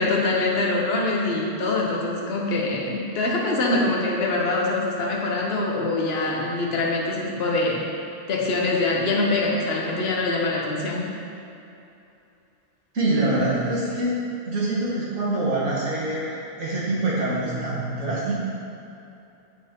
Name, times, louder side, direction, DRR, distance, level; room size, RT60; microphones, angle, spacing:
voice 1, 0.0-7.8 8.3-11.0, left 2 dB, 60° left, -2 dB, 1.2 m, -24 dB
voice 2, 12.9-14.1 14.5-18.3, right 2 dB, 85° right, -8 dB, 1.7 m, -25 dB
8.8 x 4.4 x 3.7 m, 2.8 s
omnidirectional pair, 1.2 m